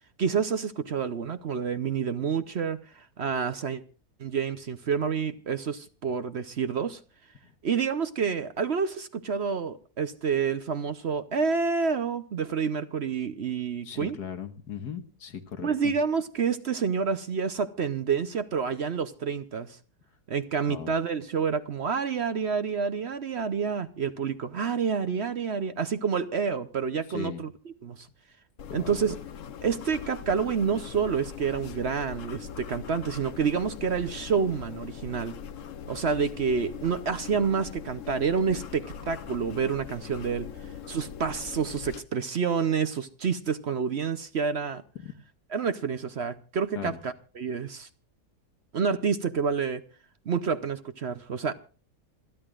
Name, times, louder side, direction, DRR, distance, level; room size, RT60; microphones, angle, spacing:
voice 1, 0.2-3.8 4.2-7.0 7.6-14.2 15.6-19.8 20.3-27.5 27.8-28.1 28.7-29.2 29.6-35.4 35.9-44.8 45.5-47.9 48.7-49.8 50.3-51.5, right 6 dB, 50° right, 0.9 m, -28 dB
voice 2, 13.8-15.9 20.7-20.9 27.1-27.4 28.7-29.0 40.6-40.7 45.0-45.1 46.7-47.0, left 7 dB, 85° left, 1.9 m, -38 dB
sound 1, 28.6-42.0, left 7 dB, 60° left, 1.1 m, -41 dB
27.5 x 11.0 x 2.5 m
omnidirectional pair, 1.7 m